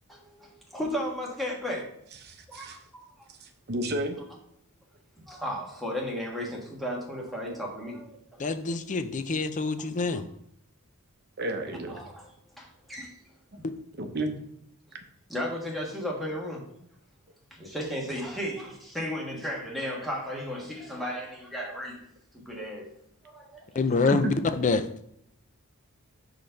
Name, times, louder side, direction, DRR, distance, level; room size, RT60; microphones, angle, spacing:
voice 1, 0.1-1.9 2.5-3.3 5.2-8.4 8.7-8.8 11.9-12.3 12.6-13.2 13.6-13.7 15.3-16.6 17.5-22.0 22.3-22.9 23.2-24.0, equal, ahead, -2 dB, 1.3 m, -35 dB
voice 2, 2.2-2.8 3.4-4.2 11.4-12.0 14.0-14.3 24.1-24.3, right 1 dB, 50° right, 5 dB, 0.8 m, -31 dB
voice 3, 8.4-10.2 13.6-13.7 23.7-24.9, left 3 dB, 35° left, 10 dB, 0.4 m, -26 dB
5.1 x 3.9 x 5.6 m, 0.72 s
head